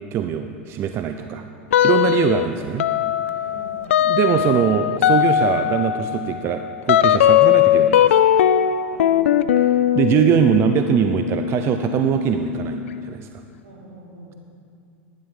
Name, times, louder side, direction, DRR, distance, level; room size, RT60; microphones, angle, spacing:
voice 1, 0.1-1.4 1.8-2.9 4.0-8.3 9.6-13.4, right 9 dB, 40° right, 7 dB, 0.5 m, -22 dB
sound 1, 1.7-2.5 2.8-13.1, left 11 dB, 85° left, 0.4 m, -19 dB
voice 2, 3.4-3.9 8.9-9.6 13.6-14.4, right 2 dB, 75° right, -4 dB, 3.4 m, -44 dB
14.5 x 11.5 x 3.7 m, 2.4 s
hypercardioid pair, 110°, 7 cm